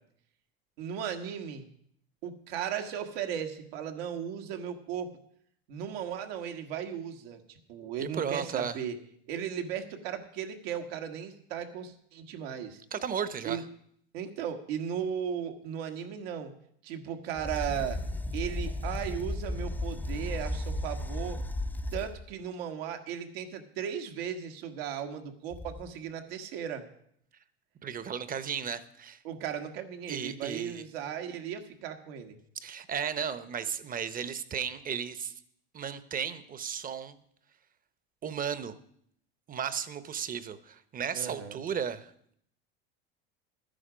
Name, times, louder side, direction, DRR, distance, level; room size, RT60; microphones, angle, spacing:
voice 1, 0.8-1.7 2.2-5.1 5.7-9.0 9.3-12.8 13.5-13.6 14.1-16.5 16.8-18.0 18.3-21.4 21.9-26.8 29.2-32.4 41.1-41.6, right 8 dB, 80° right, 6 dB, 1.7 m, -36 dB
voice 2, 8.0-8.8 12.9-13.6 27.8-29.2 30.1-30.8 32.6-35.3 35.7-37.2 38.2-38.7 39.5-42.3, right 7 dB, 30° right, 14 dB, 0.9 m, -34 dB
sound 1, 17.4-22.3 25.5-25.9, left 1 dB, 5° left, 0.6 m, -34 dB
13.0 x 10.0 x 5.1 m, 0.68 s
supercardioid pair, 110°, 29 cm